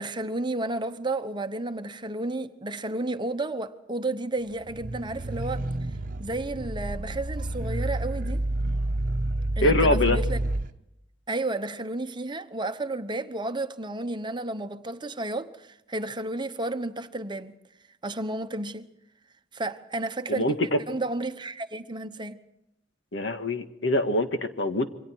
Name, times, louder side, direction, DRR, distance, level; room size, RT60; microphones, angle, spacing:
voice 1, 0.0-5.7 6.2-8.4 9.6-10.4 11.3-17.5 18.0-18.9 19.5-20.5 20.9-22.4, right 2 dB, 25° right, 1.0 m, -32 dB
sound 1, 4.6-10.7, right 1 dB, 50° right, 1.0 m, -29 dB
voice 2, 9.6-10.2 20.3-20.8 23.1-24.9, left 1 dB, 80° left, 1.7 m, -24 dB
28.0 x 24.5 x 4.7 m
head